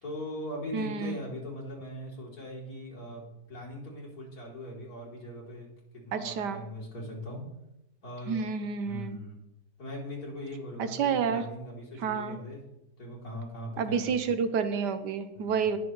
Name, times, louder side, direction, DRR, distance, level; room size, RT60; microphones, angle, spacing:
voice 1, 0.0-5.7 5.9-7.4 8.0-8.5 8.8-9.4 9.8-12.7 13.0-14.4 15.3-15.6, equal, 60° left, -4 dB, 3.7 m, -40 dB
voice 2, 0.7-1.1 6.1-6.6 8.3-9.2 10.8-11.4 12.0-12.4 13.8-15.8, right 6 dB, 80° right, 10 dB, 1.4 m, -29 dB
19.5 x 6.9 x 3.2 m, 0.89 s
omnidirectional pair, 1.8 m